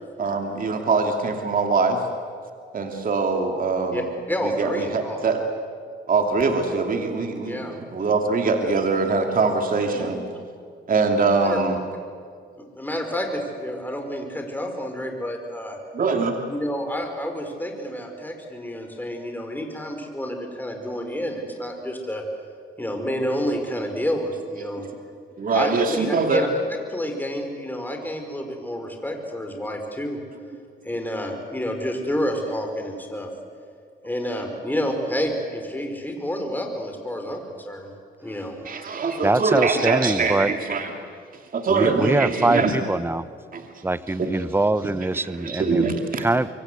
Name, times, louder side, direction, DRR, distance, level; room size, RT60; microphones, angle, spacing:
voice 1, 0.2-2.0 2.7-4.1 4.4-5.4 6.1-10.2 10.9-11.8 15.9-16.4 25.4-26.5 38.6-40.9 41.5-42.7 43.5-43.6 44.2-44.3 45.2-46.3, right 4 dB, 45° right, 4 dB, 2.8 m, -23 dB
voice 2, 3.9-5.2 7.4-7.8 9.9-10.1 11.4-11.6 12.8-15.8 16.5-22.2 22.8-24.9 25.5-26.5 26.9-30.2 30.8-33.3 34.0-37.9 38.2-38.6, equal, 10° left, 4 dB, 5.2 m, -29 dB
voice 3, 39.2-40.5 41.7-43.2 43.8-45.8 46.2-46.5, right 2 dB, 10° right, 15 dB, 0.9 m, -23 dB
26.0 x 23.5 x 8.3 m, 2.1 s
cardioid pair, 90°, 20 cm